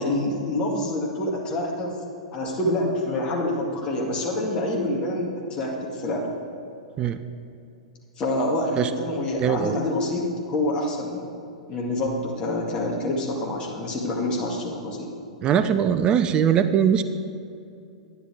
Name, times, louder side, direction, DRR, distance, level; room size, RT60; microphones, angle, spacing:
voice 1, 0.0-2.0 2.3-6.3 8.2-11.3 11.7-15.1, left 1 dB, 25° left, -2 dB, 2.0 m, -27 dB
voice 2, 9.4-9.8 15.4-17.0, right 8 dB, 25° right, 10 dB, 0.5 m, -21 dB
11.0 x 10.0 x 4.7 m, 2.5 s
figure-of-eight pair, 105°, 3 cm